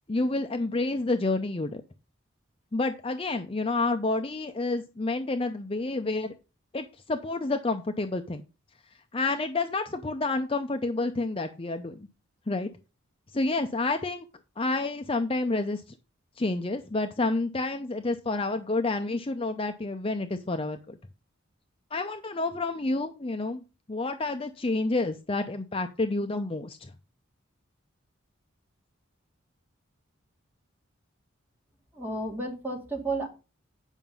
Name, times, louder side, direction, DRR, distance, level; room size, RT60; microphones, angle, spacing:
voice 1, 0.1-1.8 2.7-6.3 6.7-8.4 9.1-12.1 12.5-12.7 13.3-14.2 14.6-15.8 16.4-21.0 21.9-23.6 23.9-26.9, left 2 dB, 25° left, 6 dB, 0.6 m, -29 dB
voice 2, 31.9-33.3, right 2 dB, 10° right, -1 dB, 2.5 m, -32 dB
9.1 x 5.8 x 5.4 m, 0.31 s
head